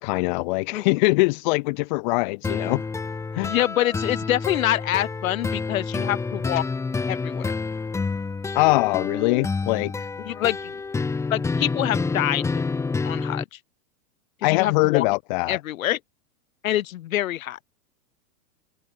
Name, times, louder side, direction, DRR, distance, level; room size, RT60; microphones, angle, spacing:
voice 1, 0.0-2.8 3.3-3.5 8.5-10.1 14.4-15.6, left 25 dB, 30° left, 1.4 m, -22 dB
sound 1, 2.4-13.4, left 4 dB, 5° left, 3.2 m, -28 dB
voice 2, 3.5-6.6 7.1-7.5 10.2-12.5 13.0-13.6 14.4-15.1 15.5-16.0 16.6-17.6, left 13 dB, 60° left, 6.8 m, -26 dB
supercardioid pair, 180°, 46 cm